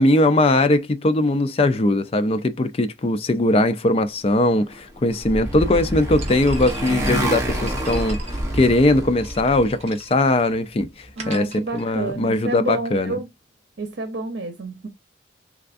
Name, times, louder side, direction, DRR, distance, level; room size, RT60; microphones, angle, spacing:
voice 1, 0.0-13.2, left 2 dB, 35° left, 0.4 m, -20 dB
Motorcycle, 4.7-9.7, right 1 dB, 15° right, 0.9 m, -27 dB
sound 1, 6.2-12.4, right 2 dB, 35° right, 1.3 m, -40 dB
voice 2, 11.2-13.3 13.8-14.9, right 3 dB, 80° right, 0.7 m, -29 dB
3.5 x 3.3 x 2.5 m
head